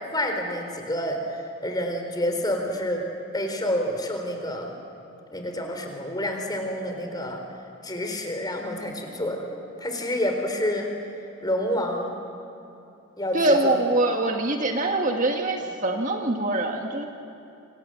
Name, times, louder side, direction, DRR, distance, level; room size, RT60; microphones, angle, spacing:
voice 1, 0.1-3.0 3.3-4.7 5.3-7.4 7.8-9.4 9.8-10.9 11.4-12.1 13.2-13.8, left 1 dB, 20° left, 3 dB, 3.9 m, -28 dB
voice 2, 13.3-17.1, right 2 dB, 40° right, 3 dB, 1.7 m, -24 dB
28.0 x 26.0 x 7.7 m, 2.8 s
head